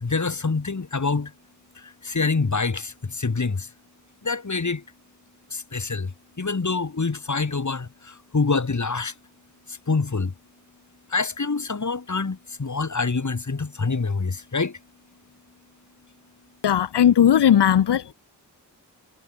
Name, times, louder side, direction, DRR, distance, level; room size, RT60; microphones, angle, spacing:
voice 1, 0.0-1.3 2.1-2.9 3.2-3.6 4.3-4.8 5.7-6.1 6.4-7.9 8.3-9.1 9.9-10.3 11.1-14.7, left 4 dB, 45° left, 6.9 m, -25 dB
voice 2, 16.6-18.1, left 9 dB, 75° left, 1.8 m, -17 dB
supercardioid pair, 45°, 41 cm